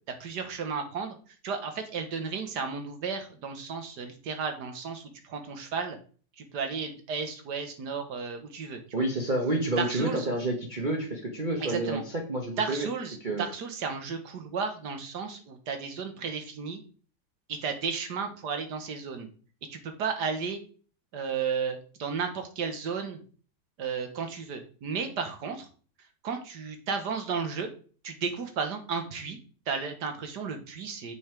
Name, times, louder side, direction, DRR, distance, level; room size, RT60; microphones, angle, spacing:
voice 1, 0.2-6.0 6.4-8.8 9.8-10.3 11.6-12.0 12.6-16.8 17.5-19.3 19.7-20.6 21.1-23.2 23.8-25.7 26.2-27.7 28.0-29.4 29.7-31.1, right 5 dB, 70° right, 6 dB, 1.8 m, -33 dB
voice 2, 8.9-12.0 12.3-12.9 13.2-13.5, right 2 dB, 30° right, 0 dB, 1.2 m, -29 dB
7.1 x 5.5 x 4.5 m, 0.40 s
omnidirectional pair, 1.8 m